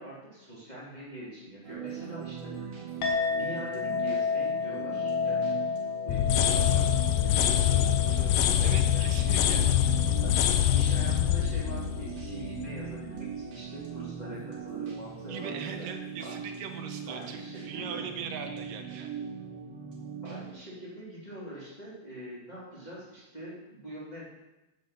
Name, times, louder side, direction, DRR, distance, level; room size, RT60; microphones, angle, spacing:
voice 1, 0.0-2.7 3.3-5.6 6.0-7.0 7.2-9.7 10.2-10.4 10.7-15.9 16.2-16.3 17.1-18.1 20.2-24.2, right 1 dB, 15° left, -7 dB, 2.8 m, -43 dB
sound 1, 1.6-20.5, right 7 dB, 55° right, 2.6 m, -40 dB
Chink clink, 3.0-11.7, left 5 dB, 60° left, 2.8 m, -33 dB
sound 2, 6.1-12.9, left 11 dB, 85° left, 2.4 m, -25 dB
voice 2, 8.6-9.6 15.3-19.2, right 6 dB, 80° right, 5 dB, 2.6 m, -40 dB
9.9 x 8.3 x 5.8 m, 1.0 s
omnidirectional pair, 3.9 m